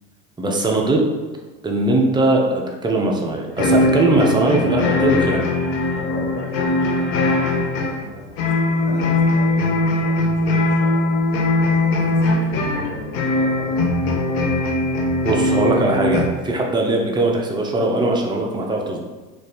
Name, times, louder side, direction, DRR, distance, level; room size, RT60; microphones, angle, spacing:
voice 1, 0.4-1.1 1.6-5.4 15.2-19.0, right 2 dB, 10° right, 0 dB, 0.5 m, -20 dB
sound 1, 3.6-16.3, left 2 dB, 60° left, 0.8 m, -20 dB
voice 2, 6.0-11.1 11.6-14.0, left 1 dB, 45° left, -2 dB, 1.2 m, -37 dB
3.3 x 2.5 x 4.1 m, 1.2 s
hypercardioid pair, 95°, 43 cm